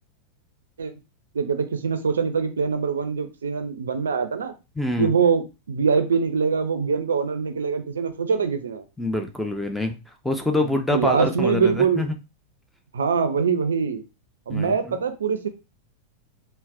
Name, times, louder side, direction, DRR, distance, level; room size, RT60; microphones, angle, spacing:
voice 1, 1.3-4.5 5.0-8.8 10.6-12.1 12.9-14.0 14.5-15.5, right 6 dB, 70° right, 9 dB, 0.4 m, -23 dB
voice 2, 4.8-5.1 9.0-10.0 10.2-12.1 14.5-15.0, left 2 dB, 5° left, 5 dB, 0.4 m, -25 dB
3.9 x 2.0 x 2.4 m, 0.28 s
figure-of-eight pair, 90°, 0 cm